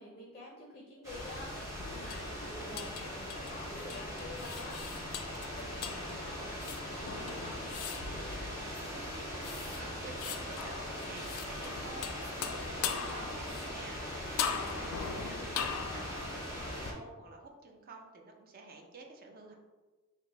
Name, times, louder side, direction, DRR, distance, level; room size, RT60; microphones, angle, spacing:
voice 1, 0.0-7.6 14.8-15.6, left 1 dB, 30° left, -3 dB, 0.4 m, -49 dB
sound 1, 1.0-16.9, equal, 15° right, 0.9 m, -41 dB
sound 2, 1.2-16.9, left 7 dB, 90° left, 0.3 m, -41 dB
voice 2, 8.0-19.5, right 2 dB, 45° right, 2 dB, 0.5 m, -51 dB
4.2 x 2.0 x 3.2 m, 1.3 s
head